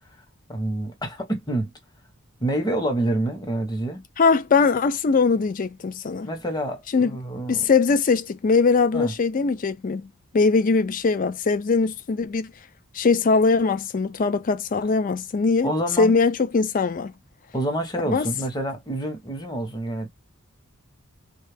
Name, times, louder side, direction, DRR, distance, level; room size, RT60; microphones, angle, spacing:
voice 1, 0.5-1.7 2.4-4.0 6.2-7.6 8.9-9.1 15.6-16.2 17.5-20.1, right 1 dB, 20° left, 0.9 m, -27 dB
voice 2, 4.2-6.3 6.9-7.2 7.5-12.5 12.9-15.7 16.0-17.1 18.1-18.3, left 4 dB, 40° left, 0.4 m, -21 dB
3.1 x 2.3 x 3.3 m
head